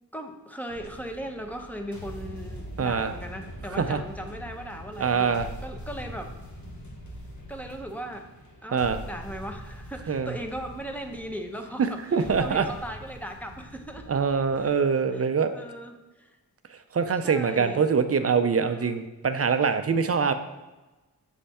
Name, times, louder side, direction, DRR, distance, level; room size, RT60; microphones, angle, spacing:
voice 1, 0.1-6.3 7.5-8.3 8.6-14.2 14.6-14.7 15.1-16.4 17.2-17.8 18.5-19.0, right 1 dB, 5° left, 4 dB, 0.8 m, -38 dB
sound 1, 0.7-15.0, equal, 50° left, 1.2 m, -43 dB
voice 2, 2.8-3.1 3.8-4.0 5.0-5.5 8.7-9.0 10.1-10.3 11.8-12.7 14.1-15.5 16.9-20.3, right 5 dB, 40° right, 9 dB, 0.5 m, -24 dB
7.3 x 3.3 x 4.2 m, 1.1 s
cardioid pair, 65°, 38 cm